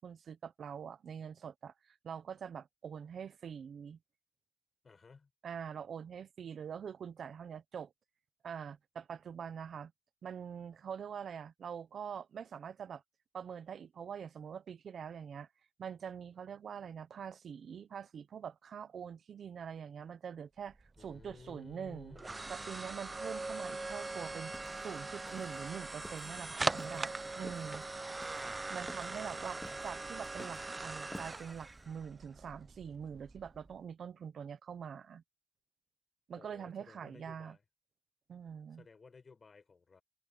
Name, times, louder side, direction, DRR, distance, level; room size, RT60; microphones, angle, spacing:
voice 1, 0.0-4.0 5.4-7.9 8.4-9.9 10.2-13.0 13.3-15.5 15.8-22.2 22.5-27.8 28.7-35.2 36.3-37.6 38.3-38.8, right 7 dB, 85° right, 0.8 m, -44 dB
voice 2, 4.8-5.3 21.0-22.6 29.3-29.8 36.4-37.6 38.8-40.0, left 4 dB, 55° left, 6.6 m, -56 dB
sound 1, 20.7-33.7, right 3 dB, 35° right, 0.6 m, -41 dB
sound 2, 24.0-31.8, left 1 dB, 15° left, 2.4 m, -54 dB
cardioid pair, 65°, 0 cm